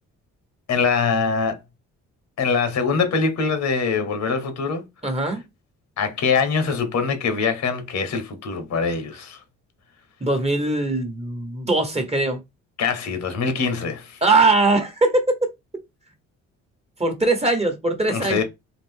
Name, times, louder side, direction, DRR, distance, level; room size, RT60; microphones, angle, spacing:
voice 1, 0.7-1.6 2.4-4.9 6.0-9.4 12.8-14.2 18.1-18.4, left 5 dB, 65° left, 1.2 m, -23 dB
voice 2, 5.0-5.4 10.2-12.4 14.2-15.5 17.0-18.4, right 2 dB, 20° right, 1.3 m, -21 dB
4.1 x 2.5 x 3.6 m
cardioid pair, 90°, 30 cm